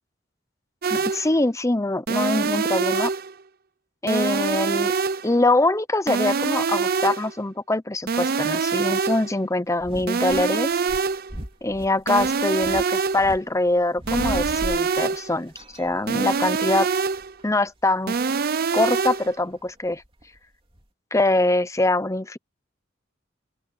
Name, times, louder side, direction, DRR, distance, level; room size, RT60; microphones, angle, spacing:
sound 1, 0.8-1.3 2.1-3.3 4.1-5.3 6.1-7.3 8.1-9.3 10.1-11.3 12.1-13.3 14.1-15.3 16.1-17.3 18.1-19.3, right 5 dB, 50° right, 0.6 m, -24 dB
voice 1, 0.9-3.1 4.0-4.9 5.2-10.7 11.6-15.5 15.8-16.9 17.4-18.2 18.7-20.0 21.1-22.4, left 2 dB, 15° left, 0.9 m, -23 dB
sound 2, 9.8-10.4 10.9-13.4 13.7-15.2 15.5-16.8 17.1-17.4 19.1-20.4 20.7-20.8, equal, 30° right, 3.0 m, -36 dB
open air
head